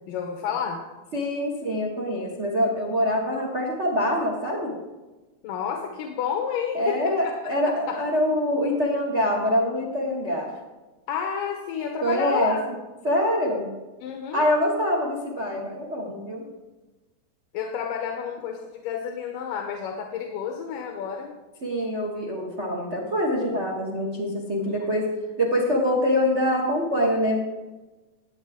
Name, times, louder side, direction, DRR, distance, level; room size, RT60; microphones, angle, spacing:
voice 1, 0.1-0.8 5.4-7.5 7.9-8.0 11.1-12.6 14.0-14.5 17.5-21.3 24.6-24.9, left 7 dB, 85° left, 2 dB, 2.6 m, -30 dB
voice 2, 1.1-4.8 6.7-10.5 12.0-12.6 13.0-13.7 14.3-16.5 21.6-25.1 25.4-27.4, equal, 85° right, -1 dB, 0.6 m, -25 dB
16.0 x 8.8 x 3.6 m, 1.2 s
omnidirectional pair, 3.8 m